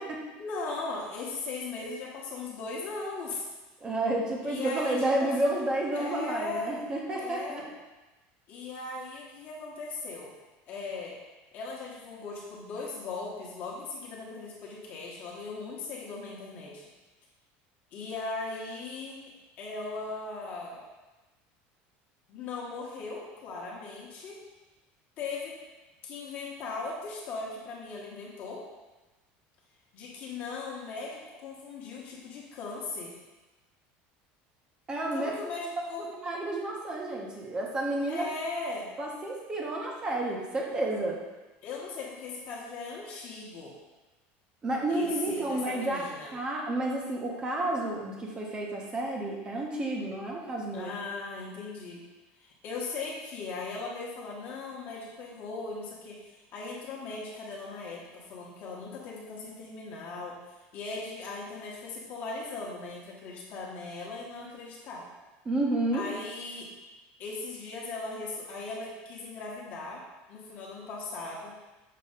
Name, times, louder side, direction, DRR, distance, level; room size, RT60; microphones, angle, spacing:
voice 1, 0.4-3.4 4.4-5.3 5.9-6.9 7.2-7.6 8.5-10.3 10.7-11.1 11.5-16.9 17.9-19.2 19.6-20.8 22.3-24.4 25.2-25.6 26.0-28.6 29.9-33.2 35.1-36.1 38.1-38.9 41.6-43.7 44.9-46.3 50.7-52.0 52.4-60.4 60.7-65.0 65.9-66.7 67.2-70.0 70.3-71.5, left 3 dB, 40° left, -4 dB, 1.2 m, -38 dB
voice 2, 3.8-7.6 34.9-35.3 36.2-38.3 39.0-41.2 44.6-46.0 46.3-50.9 65.4-66.1, right 1 dB, 20° right, -1 dB, 0.9 m, -30 dB
6.7 x 3.0 x 5.3 m, 1.1 s
cardioid pair, 175°, 5 cm